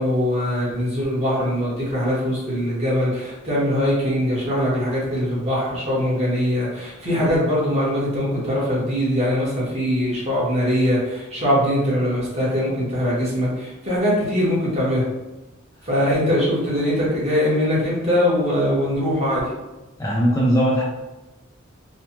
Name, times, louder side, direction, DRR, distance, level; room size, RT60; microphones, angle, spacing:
voice 1, 0.0-15.1 15.8-19.5, equal, 35° right, -7 dB, 1.1 m, -22 dB
voice 2, 20.0-20.8, equal, 15° left, -4 dB, 0.4 m, -19 dB
3.1 x 2.0 x 2.8 m, 1.0 s
head